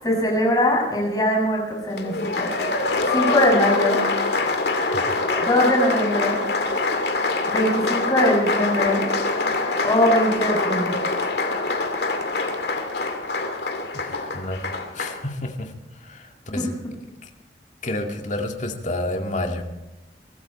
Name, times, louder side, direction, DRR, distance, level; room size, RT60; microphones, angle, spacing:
voice 1, 0.0-2.5 3.1-4.0 5.4-6.4 7.5-9.1 9.8-11.0 16.5-16.7, left 1 dB, 20° left, -1 dB, 6.4 m, -21 dB
Applause, 2.0-15.2, left 3 dB, 65° left, 2.5 m, -24 dB
voice 2, 4.9-5.3 13.9-15.7 16.0-16.7 17.8-19.6, left 1 dB, 45° left, 4 dB, 2.1 m, -30 dB
23.5 x 14.0 x 4.3 m, 1.0 s
head